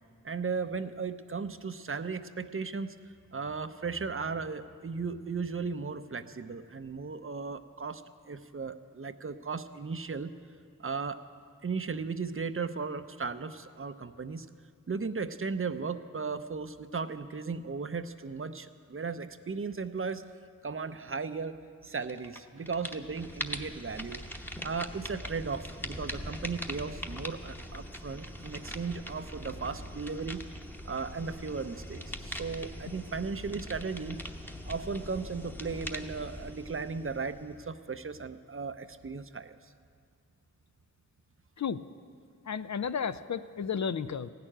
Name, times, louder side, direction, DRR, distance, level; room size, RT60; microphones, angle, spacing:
voice 1, 0.2-2.9 3.3-8.0 8.3-10.3 10.8-11.2 11.6-14.5 14.9-20.2 20.6-21.6 21.8-24.2 24.6-30.4 30.8-34.2 34.7-39.6, right 4 dB, 40° right, 11 dB, 0.6 m, -36 dB
sound 1, 22.0-22.4 22.7-37.7, equal, 5° left, 0.9 m, -42 dB
voice 2, 42.5-44.3, left 6 dB, 60° left, 12 dB, 0.5 m, -33 dB
15.5 x 6.8 x 10.0 m, 2.3 s
wide cardioid pair, 55°, 33 cm